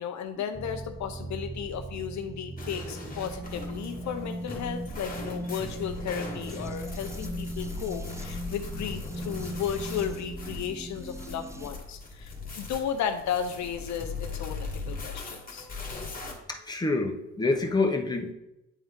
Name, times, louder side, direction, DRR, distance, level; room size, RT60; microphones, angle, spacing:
voice 1, 0.0-15.7, left 8 dB, 70° left, 7 dB, 0.6 m, -34 dB
sound 1, 0.5-11.7, right 2 dB, 10° right, 0.4 m, -39 dB
sound 2, 2.6-16.3, left 3 dB, 30° left, 1.7 m, -39 dB
voice 2, 15.4-15.9 16.5-18.3, left 3 dB, 15° left, 2 dB, 1.0 m, -28 dB
9.2 x 3.5 x 3.7 m, 0.89 s
cardioid pair, 90°, 30 cm